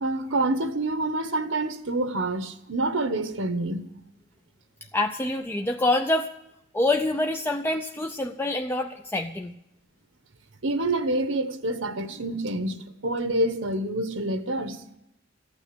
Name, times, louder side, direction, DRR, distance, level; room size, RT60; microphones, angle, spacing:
voice 1, 0.0-3.8 10.6-12.8 13.0-14.8, right 2 dB, 80° right, 1.1 m, -27 dB
voice 2, 4.9-6.3 6.7-9.5, left 2 dB, 10° left, 0.5 m, -26 dB
14.5 x 9.2 x 9.9 m
head